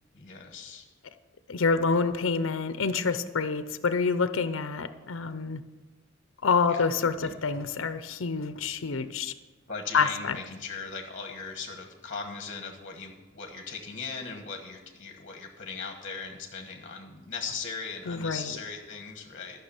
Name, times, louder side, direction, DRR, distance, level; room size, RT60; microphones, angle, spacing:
voice 1, 0.1-0.9 1.9-2.0 6.6-6.8 7.2-7.4 9.7-19.6, left 5 dB, 40° left, 4 dB, 1.3 m, -39 dB
voice 2, 1.5-5.6 6.4-9.3 9.9-10.4 18.1-18.5, left 5 dB, 70° left, 12 dB, 0.6 m, -27 dB
13.0 x 6.0 x 7.1 m, 1.2 s
head